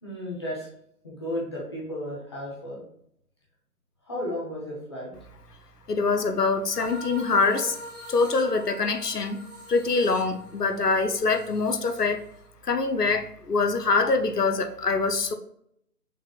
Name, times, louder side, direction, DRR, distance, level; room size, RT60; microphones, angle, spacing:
voice 1, 0.0-0.7 1.0-2.8 4.0-5.1, left 1 dB, 15° left, -5 dB, 0.9 m, -33 dB
voice 2, 5.9-7.8 8.1-9.4 9.7-12.2 12.6-15.3, left 4 dB, 75° left, 7 dB, 0.8 m, -24 dB
sound 1, 6.7-12.4, equal, 5° right, 1.2 m, -42 dB
6.3 x 3.5 x 2.4 m, 0.72 s
figure-of-eight pair, 150°, 47 cm